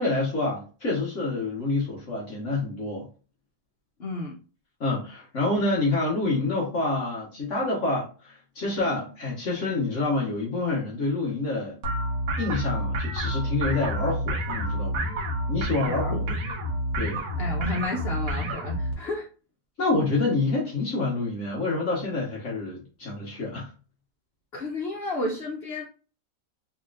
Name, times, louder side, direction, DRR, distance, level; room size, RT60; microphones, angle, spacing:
voice 1, 0.0-3.1 4.8-11.8 12.4-15.1 15.5-16.4 17.0-17.2 19.8-23.7, left 2 dB, 45° left, 1.4 m, -27 dB
voice 2, 4.0-4.3 15.8-16.2 17.4-19.3 24.5-25.8, left 2 dB, 85° left, 0.5 m, -31 dB
sound 1, 11.8-18.9, equal, 80° right, 1.7 m, -29 dB
4.2 x 3.0 x 2.4 m
omnidirectional pair, 1.9 m